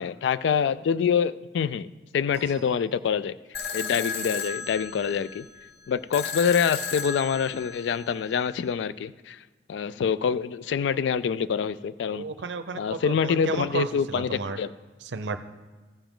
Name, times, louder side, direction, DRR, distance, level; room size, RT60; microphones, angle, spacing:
voice 1, 0.0-1.9 2.1-3.4 3.7-5.5 5.9-9.4 9.7-12.2 12.7-14.7, left 7 dB, 75° left, 17 dB, 0.3 m, -26 dB
sound 1, 2.3-3.7, right 2 dB, 10° right, 1.4 m, -53 dB
sound 2, 3.5-8.6, left 5 dB, 60° left, 0.8 m, -34 dB
voice 2, 12.1-14.6 15.1-15.4, right 4 dB, 75° right, 11 dB, 0.6 m, -32 dB
14.0 x 7.0 x 3.8 m, 1.3 s
head